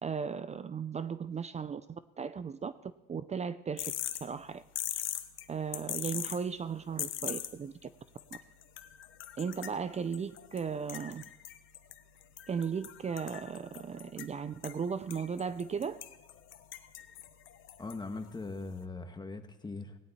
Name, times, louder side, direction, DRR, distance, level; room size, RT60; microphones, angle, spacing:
voice 1, 0.0-3.9 4.2-4.6 5.5-7.9 9.4-11.3 12.5-16.0, right 6 dB, 35° right, 14 dB, 0.5 m, -36 dB
sound 1, 3.8-18.8, left 12 dB, 85° left, 1.1 m, -43 dB
voice 2, 17.8-20.0, left 3 dB, 20° left, 7 dB, 1.6 m, -40 dB
18.5 x 17.5 x 4.3 m, 1.1 s
cardioid pair, 90°, 20 cm